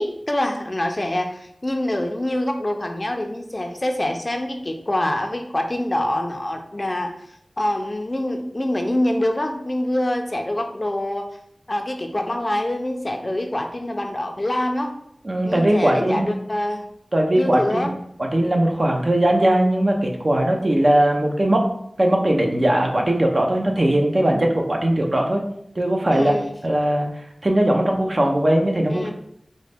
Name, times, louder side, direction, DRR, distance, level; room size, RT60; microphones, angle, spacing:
voice 1, 0.0-7.1 7.6-11.3 11.7-14.9 15.4-16.8 17.3-17.9 26.1-26.5 28.9-29.1, left 1 dB, 35° left, 4 dB, 0.4 m, -25 dB
voice 2, 15.2-16.2 17.1-17.9 18.3-21.7 22.0-25.4 25.8-26.3 26.6-27.1 27.4-29.1, right 1 dB, 45° right, 1 dB, 0.6 m, -19 dB
3.8 x 2.1 x 3.4 m, 0.72 s
wide cardioid pair, 65°, 0 cm